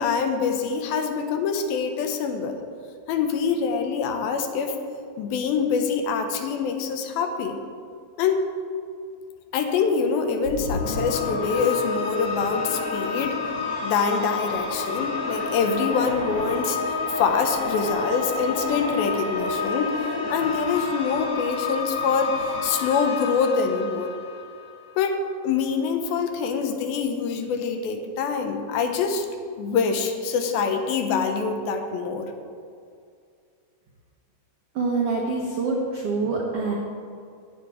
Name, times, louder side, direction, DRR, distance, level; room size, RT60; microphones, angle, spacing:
voice 1, 0.0-2.6 3.1-4.8 5.2-7.6 8.2-8.4 9.5-13.4 13.8-16.8 17.1-19.9 20.3-22.3 22.6-24.1 25.0-29.3 29.6-32.3, left 5 dB, 80° left, 5 dB, 2.6 m, -25 dB
sound 1, 10.4-24.8, left 4 dB, 55° left, 1.9 m, -29 dB
voice 2, 34.7-36.7, right 3 dB, 75° right, -2 dB, 1.3 m, -25 dB
10.0 x 9.4 x 4.8 m, 2.3 s
omnidirectional pair, 4.4 m